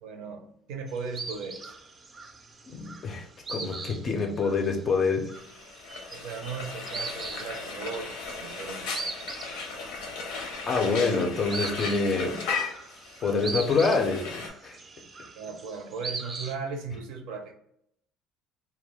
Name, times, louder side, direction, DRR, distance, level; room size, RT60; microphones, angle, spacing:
voice 1, 0.0-1.7 6.1-8.9 15.4-17.5, right 5 dB, 80° right, 0.5 m, -37 dB
sound 1, 0.9-16.5, right 3 dB, 25° right, 0.4 m, -41 dB
voice 2, 2.7-5.3 10.7-12.4 13.2-14.8, left 4 dB, 35° left, 0.4 m, -26 dB
Frying (food), 5.3-14.5, left 4 dB, 85° left, 0.6 m, -36 dB
2.3 x 2.1 x 3.0 m
cardioid pair, 120°, 0 cm